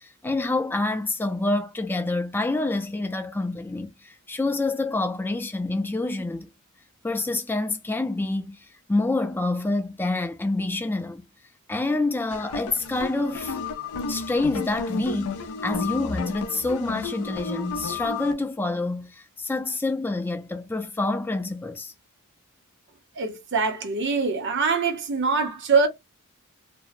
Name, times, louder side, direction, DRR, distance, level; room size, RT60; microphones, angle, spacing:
voice 1, 0.0-6.5 7.0-11.3 11.7-13.6 14.1-21.9, left 2 dB, 10° left, 0.3 m, -27 dB
sound 1, 12.3-18.3, left 4 dB, 80° left, 0.4 m, -32 dB
voice 2, 23.2-25.9, right 4 dB, 55° right, 0.7 m, -23 dB
2.6 x 2.0 x 2.5 m
head